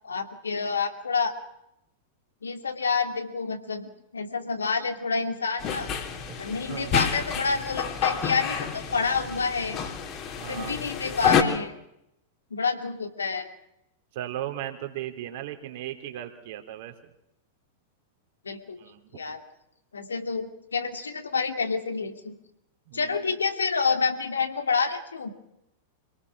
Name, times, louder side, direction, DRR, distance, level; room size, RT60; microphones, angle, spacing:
voice 1, 0.0-1.3 2.4-5.9 6.4-9.8 10.5-11.7 12.5-13.5 18.4-18.8 19.1-19.4 19.9-22.3 22.9-25.3, left 5 dB, 75° left, 5 dB, 2.5 m, -28 dB
sound 1, 5.6-11.4, left 7 dB, 35° left, 3.1 m, -29 dB
voice 2, 6.7-7.0 10.4-10.8 14.1-16.9 18.8-19.0 22.9-23.2, right 12 dB, 50° right, 6 dB, 3.3 m, -36 dB
27.0 x 19.0 x 6.2 m, 0.84 s
figure-of-eight pair, 95°, 0 cm